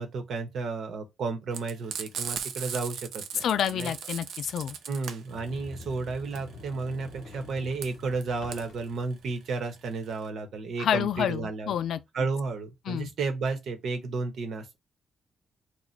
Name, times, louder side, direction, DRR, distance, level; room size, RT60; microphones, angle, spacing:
voice 1, 0.0-3.9 4.9-11.7 12.1-14.7, right 4 dB, 60° right, 1.1 m, -32 dB
Frying (food), 1.5-10.3, right 7 dB, 80° right, 0.6 m, -38 dB
voice 2, 3.4-4.8 10.8-12.0 12.9-13.1, left 9 dB, 75° left, 0.4 m, -28 dB
Sliding door, 5.3-10.1, left 3 dB, 55° left, 1.0 m, -47 dB
4.1 x 2.4 x 4.5 m
wide cardioid pair, 170°, 0 cm